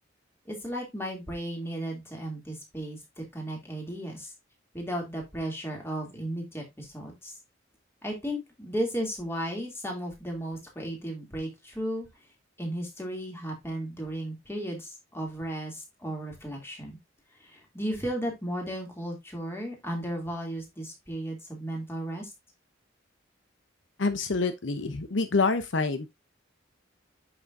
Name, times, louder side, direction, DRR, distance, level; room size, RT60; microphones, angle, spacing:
voice 1, 0.5-4.3 4.7-7.4 8.0-12.1 12.6-17.0 17.4-22.3, right 1 dB, 10° left, 2.9 m, -35 dB
voice 2, 24.0-26.1, left 3 dB, 65° left, 0.8 m, -27 dB
9.2 x 6.1 x 2.7 m
head